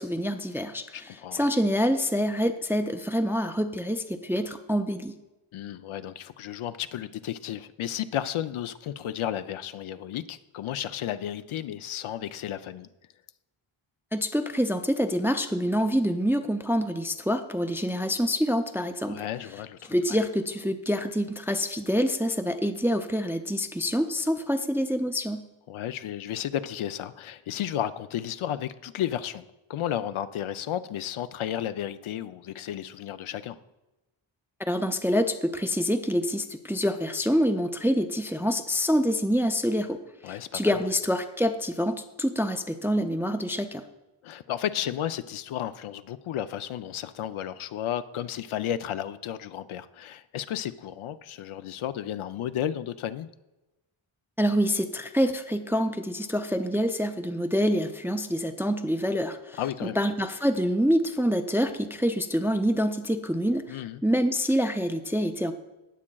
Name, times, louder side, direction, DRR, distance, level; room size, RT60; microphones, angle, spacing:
voice 1, 0.0-5.2 14.1-19.2 19.9-25.4 34.6-40.0 40.2-43.8 54.4-65.5, equal, 5° right, 7 dB, 0.3 m, -26 dB
voice 2, 0.9-1.5 5.5-12.9 19.0-20.2 25.7-29.4 29.7-33.6 40.2-40.8 44.2-53.3 59.6-60.0 63.7-64.0, left 11 dB, 75° left, 12 dB, 0.6 m, -33 dB
18.5 x 7.3 x 2.3 m, 1.0 s
wide cardioid pair, 130°, 49 cm